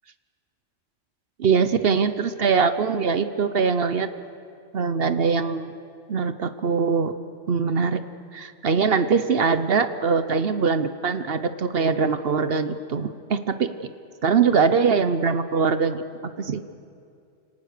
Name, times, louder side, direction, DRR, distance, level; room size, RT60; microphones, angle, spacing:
voice 1, 1.4-4.1 4.7-5.6 6.1-7.1 7.5-8.0 8.3-13.9 14.2-16.6, right 5 dB, 55° right, 11 dB, 1.0 m, -22 dB
29.5 x 18.0 x 6.7 m, 2.4 s
omnidirectional pair, 1.3 m